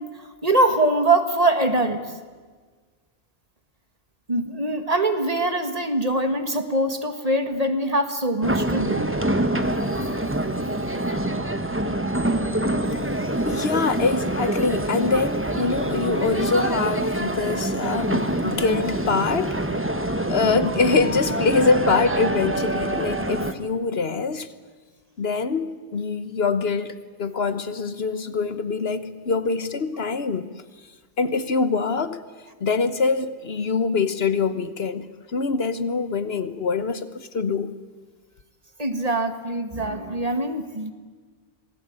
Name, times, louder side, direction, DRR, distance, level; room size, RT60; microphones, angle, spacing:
voice 1, 0.0-2.0 4.3-9.1 38.8-40.9, right 2 dB, 30° right, 1.9 m, -23 dB
sound 1, 8.4-23.5, right 1 dB, 10° right, 1.2 m, -25 dB
voice 2, 13.2-19.7 20.3-24.5 25.2-30.5 31.2-32.2 32.6-37.7, left 4 dB, 60° left, 1.2 m, -24 dB
27.0 x 19.0 x 8.8 m
omnidirectional pair, 1.2 m